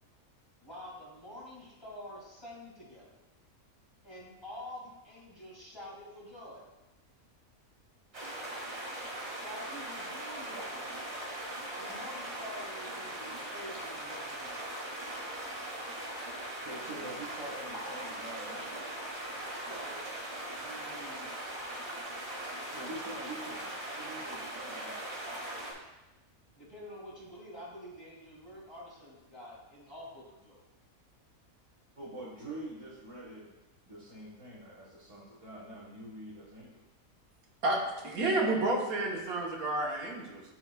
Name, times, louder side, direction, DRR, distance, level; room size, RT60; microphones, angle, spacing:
voice 1, 0.6-3.1 4.0-6.6 9.4-11.0 11.8-14.8 19.6-20.1 20.4-21.4 26.5-30.6, left 1 dB, 20° left, -6 dB, 2.0 m, -48 dB
sound 1, 8.1-25.7, right 1 dB, 45° right, 2.0 m, -40 dB
voice 2, 16.6-18.8 22.7-23.7 24.0-25.0 32.0-33.4 33.8-36.8, right 1 dB, 25° right, -7 dB, 0.9 m, -45 dB
voice 3, 37.6-40.4, right 2 dB, 80° right, -1 dB, 1.6 m, -30 dB
12.0 x 4.5 x 2.3 m, 1.0 s
omnidirectional pair, 1.5 m